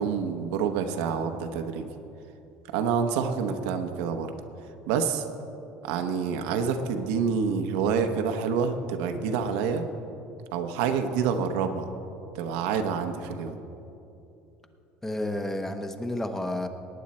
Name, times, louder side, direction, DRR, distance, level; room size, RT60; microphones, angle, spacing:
voice 1, 0.0-1.9 2.7-4.3 4.9-5.3 5.8-9.9 10.5-11.9 12.3-13.6, right 6 dB, 85° right, 6 dB, 0.9 m, -27 dB
voice 2, 15.0-16.7, left 1 dB, 10° left, 7 dB, 0.9 m, -31 dB
18.0 x 9.3 x 4.3 m, 2.8 s
cardioid pair, 125°, 4 cm